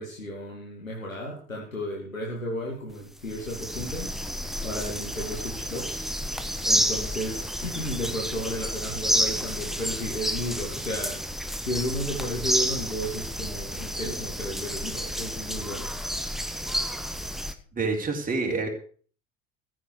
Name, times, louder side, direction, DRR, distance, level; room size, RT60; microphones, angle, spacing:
voice 1, 0.0-4.1 4.6-6.0 6.6-11.2 11.6-15.9, equal, 85° left, -2 dB, 2.4 m, -33 dB
sound 1, 2.9-3.0 3.3-17.5, equal, ahead, 1.3 m, -30 dB
voice 2, 17.7-18.7, right 3 dB, 20° right, 1 dB, 3.8 m, -27 dB
14.5 x 7.3 x 6.6 m, 0.44 s
figure-of-eight pair, 65°, 39 cm